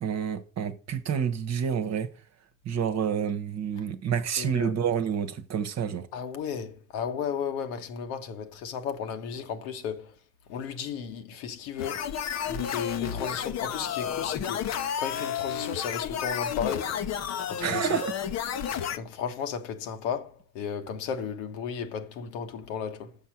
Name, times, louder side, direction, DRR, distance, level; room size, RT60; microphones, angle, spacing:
voice 1, 0.0-2.1 2.6-6.1 17.6-18.1, right 7 dB, 40° right, 1.2 m, -28 dB
voice 2, 4.4-4.7 6.1-10.1 10.5-12.0 12.5-14.7 15.0-16.9 17.3-17.9 19.0-20.3 20.5-23.1, left 7 dB, 75° left, 1.4 m, -34 dB
sound 1, 11.8-19.0, left 9 dB, 40° left, 0.8 m, -31 dB
7.2 x 5.6 x 5.9 m
supercardioid pair, 95°, 41 cm